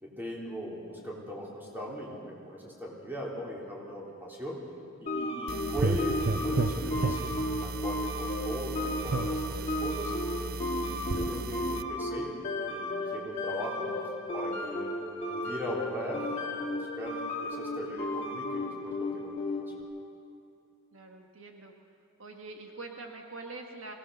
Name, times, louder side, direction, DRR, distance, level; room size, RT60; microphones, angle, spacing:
voice 1, 0.0-4.6 5.0-10.1 10.5-12.3 12.7-13.9 14.3-14.9 15.3-16.3 16.6-19.5, equal, 10° right, -3 dB, 3.5 m, -39 dB
sound 1, 5.1-19.8, left 1 dB, 30° left, 2.4 m, -34 dB
sound 2, 5.5-11.8, right 3 dB, 45° right, 0.6 m, -33 dB
voice 2, 20.9-21.7 22.2-23.9, right 3 dB, 65° right, 2 dB, 1.7 m, -45 dB
22.5 x 18.0 x 6.4 m, 2.6 s
head